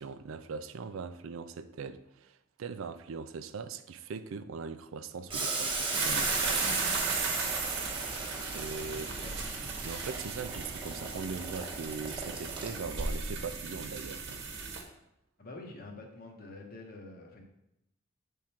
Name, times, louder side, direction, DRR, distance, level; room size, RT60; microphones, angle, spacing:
voice 1, 0.0-7.0 8.5-9.1 9.8-14.4, right 5 dB, 80° right, 0.4 m, -41 dB
Boiling, 5.3-13.1, right 3 dB, 25° right, 1.1 m, -37 dB
sound 1, 5.9-14.8, right 4 dB, 60° right, 1.1 m, -36 dB
voice 2, 8.9-9.4 15.4-17.4, left 2 dB, 50° left, 1.1 m, -47 dB
7.4 x 3.7 x 4.3 m
head